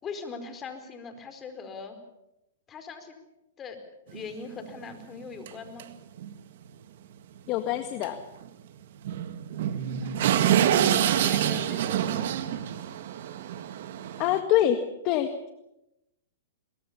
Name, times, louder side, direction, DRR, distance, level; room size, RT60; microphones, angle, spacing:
voice 1, 0.0-2.0 2.7-3.3 3.6-3.8 4.1-5.9 9.9-12.3, left 5 dB, 25° left, 7 dB, 4.7 m, -41 dB
sound 1, 4.1-4.2 4.6-4.7 5.5-5.6 5.8-5.9 6.2-6.3 8.0-8.1 8.4-8.5 9.0-14.4, right 10 dB, 60° right, 1.8 m, -26 dB
voice 2, 7.5-8.2 14.2-15.5, left 11 dB, 40° left, 8 dB, 1.7 m, -25 dB
23.0 x 21.5 x 7.0 m, 0.88 s
hypercardioid pair, 130°, 0 cm